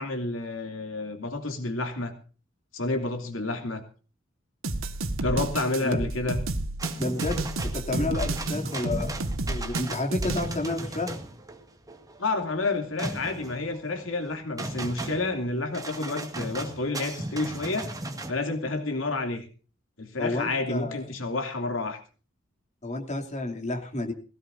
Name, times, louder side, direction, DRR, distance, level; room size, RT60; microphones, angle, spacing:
voice 1, 0.0-2.1 2.7-3.8 5.2-6.4 12.2-17.9 18.3-19.5 20.0-22.0, left 2 dB, 70° left, 6 dB, 2.9 m, -30 dB
sound 1, 4.6-10.5, right 2 dB, 85° right, 1.8 m, -31 dB
sound 2, 6.8-18.3, right 2 dB, 20° right, 2.0 m, -36 dB
voice 2, 6.9-11.1 20.2-21.1 22.8-24.1, left 2 dB, 35° left, 2 dB, 2.9 m, -31 dB
21.0 x 17.0 x 2.7 m, 0.37 s
head